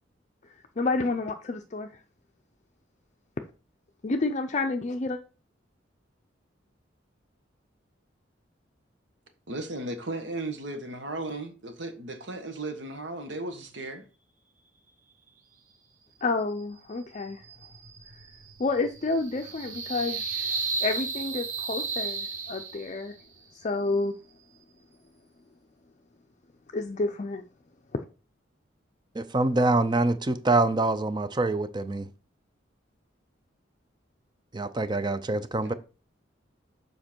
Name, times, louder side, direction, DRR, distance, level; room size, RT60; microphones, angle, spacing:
voice 1, 0.8-1.9 4.0-5.2 16.2-17.4 18.6-20.2 20.8-23.1 23.6-24.2 26.7-27.4 27.9-28.0, left 3 dB, 40° left, 0.5 m, -29 dB
voice 2, 9.5-14.0 35.6-35.7, right 2 dB, 70° right, 1.4 m, -35 dB
sound 1, 17.1-23.1, right 4 dB, 45° right, 1.1 m, -34 dB
voice 3, 29.1-32.1 34.5-35.7, right 2 dB, 25° right, 0.5 m, -25 dB
7.5 x 5.2 x 4.4 m
head